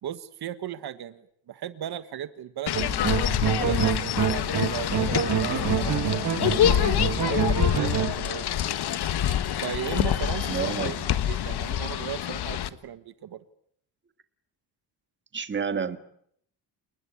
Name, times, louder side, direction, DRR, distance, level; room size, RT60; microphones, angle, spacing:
voice 1, 0.0-6.6 7.2-8.8 9.6-13.4, right 10 dB, 65° right, 13 dB, 1.4 m, -37 dB
sound 1, 2.7-12.7, left 11 dB, 65° left, 1.5 m, -26 dB
sound 2, 2.7-8.1, right 8 dB, 45° right, 2.5 m, -27 dB
sound 3, 6.3-11.9, equal, 5° left, 5.1 m, -49 dB
voice 2, 10.5-11.0 15.3-16.0, right 6 dB, 25° right, 11 dB, 1.8 m, -29 dB
29.0 x 20.5 x 9.8 m, 0.70 s
cardioid pair, 160°, 41 cm